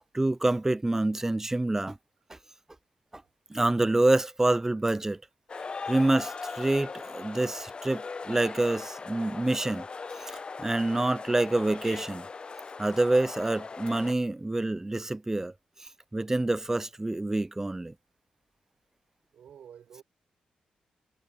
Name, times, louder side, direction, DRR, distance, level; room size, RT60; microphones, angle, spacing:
voice 1, 0.1-2.0 3.5-5.2 5.9-9.8 10.6-12.3 12.8-15.5 16.1-17.9, right 2 dB, 15° right, 0.5 m, -27 dB
sound 1, 5.5-14.1, left 4 dB, 40° left, 0.4 m, -40 dB
voice 2, 19.3-20.0, right 8 dB, 75° right, 4.9 m, -50 dB
cardioid pair, 65°, 3 cm